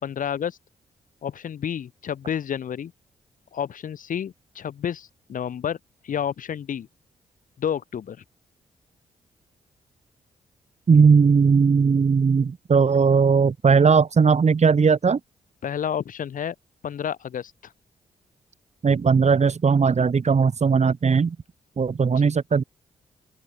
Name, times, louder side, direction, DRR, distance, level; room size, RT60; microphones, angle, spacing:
voice 1, 0.0-0.6 1.2-2.9 3.5-5.8 6.0-6.9 7.6-8.2 15.6-16.5 16.8-17.7 22.0-22.3, left 8 dB, 70° left, 4.7 m, -30 dB
voice 2, 10.9-15.2 18.8-21.4 21.8-22.6, right 5 dB, 50° right, 6.0 m, -18 dB
open air
supercardioid pair, 45°, 14 cm